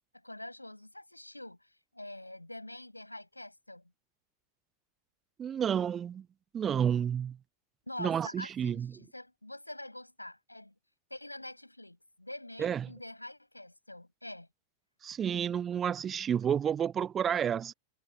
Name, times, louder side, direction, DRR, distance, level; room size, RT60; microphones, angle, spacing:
voice 1, 0.2-3.8 7.9-10.7 11.1-14.5, left 1 dB, 85° left, 7.0 m, -45 dB
voice 2, 5.4-6.3 6.5-7.4 8.0-8.9 12.6-12.9 15.0-17.7, right 8 dB, 25° right, 0.3 m, -30 dB
figure-of-eight pair, 90°, 0 cm